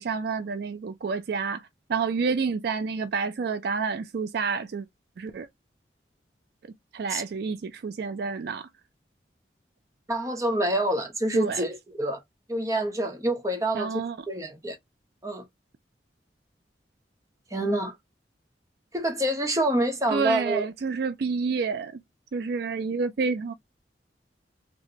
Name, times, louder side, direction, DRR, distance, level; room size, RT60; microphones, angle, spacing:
voice 1, 0.0-4.9 5.2-5.5 6.9-8.7 11.3-11.6 13.7-14.2 20.1-22.0 22.3-23.5, right 5 dB, 60° right, 0.4 m, -29 dB
voice 2, 10.1-12.2 12.5-13.9 14.3-14.8 15.2-15.4 17.5-17.9 18.9-20.7, right 1 dB, 20° right, 0.8 m, -27 dB
4.1 x 2.1 x 2.7 m
head